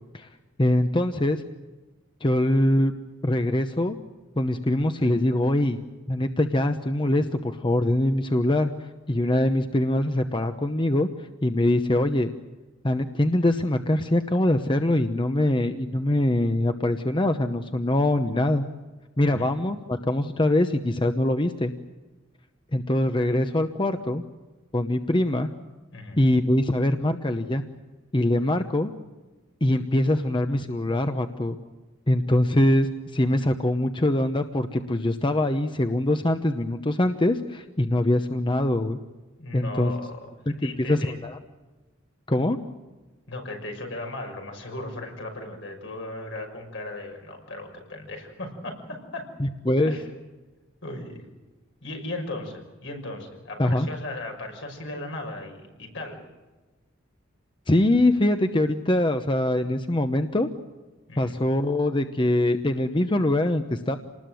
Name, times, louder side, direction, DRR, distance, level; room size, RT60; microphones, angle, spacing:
voice 1, 0.6-1.4 2.2-2.9 3.2-4.0 4.4-5.8 6.1-11.1 11.4-12.3 12.8-18.6 19.2-21.7 22.7-24.2 24.7-25.5 26.2-27.6 28.1-28.9 29.6-31.6 32.1-39.0 39.5-39.9 40.6-41.4 42.3-42.6 49.4-50.0 53.6-53.9 57.7-60.5 61.2-64.0, left 1 dB, 25° left, 7 dB, 0.9 m, -23 dB
voice 2, 39.4-40.3 40.6-41.2 43.3-49.3 49.9-50.0 50.8-51.2 51.8-56.2 61.1-61.4, left 2 dB, 70° left, 3 dB, 6.0 m, -36 dB
28.0 x 19.5 x 7.7 m, 1.2 s
head